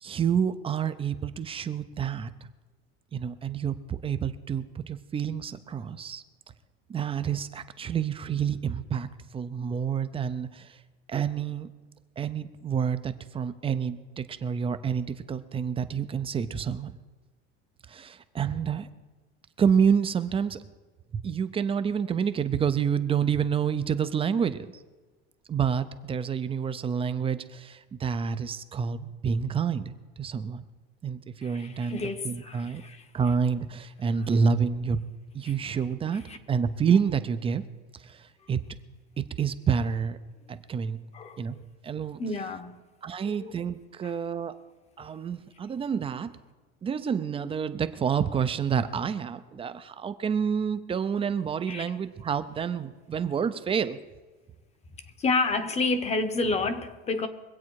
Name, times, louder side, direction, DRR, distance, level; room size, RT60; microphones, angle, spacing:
voice 1, 0.0-2.3 3.1-6.2 6.9-10.8 11.1-11.7 12.2-17.0 17.9-18.9 19.6-20.7 21.1-24.7 25.5-30.6 31.0-32.0 32.2-32.8 33.1-35.0 35.3-36.2 36.5-37.6 38.0-38.6 39.2-40.2 40.5-41.0 41.4-41.6 41.8-42.2 43.0-44.6 45.0-46.3 46.8-54.0, right 7 dB, 20° right, 11 dB, 0.5 m, -28 dB
voice 2, 31.4-33.1 35.5-35.6 36.3-36.4 41.1-41.5 42.2-42.8 43.2-43.6 44.0-44.1 51.7-51.8 55.2-57.3, left 3 dB, 20° left, 10 dB, 0.9 m, -30 dB
23.0 x 8.4 x 4.7 m, 1.3 s
cardioid pair, 155°, 31 cm